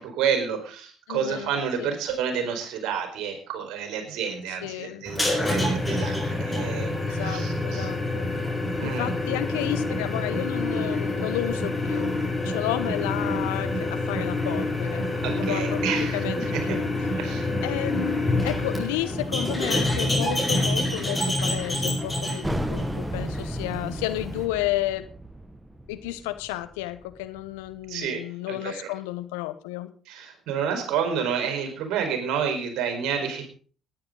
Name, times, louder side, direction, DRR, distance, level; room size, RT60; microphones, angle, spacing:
voice 1, 0.0-7.9 8.8-9.1 15.2-16.8 17.2-17.5 27.9-28.9 30.1-33.5, right 7 dB, 65° right, 5 dB, 4.5 m, -30 dB
voice 2, 1.1-1.5 1.8-1.9 4.6-5.0 7.0-8.3 8.8-15.1 15.3-15.8 16.1-16.9 17.6-25.1 25.9-29.9, left 16 dB, 80° left, 12 dB, 1.0 m, -32 dB
sound 1, 5.0-24.4, left 1 dB, 15° left, 7.1 m, -27 dB
sound 2, 22.4-27.7, right 1 dB, 10° right, 1.7 m, -35 dB
18.5 x 10.5 x 3.9 m, 0.40 s
hypercardioid pair, 50°, 0 cm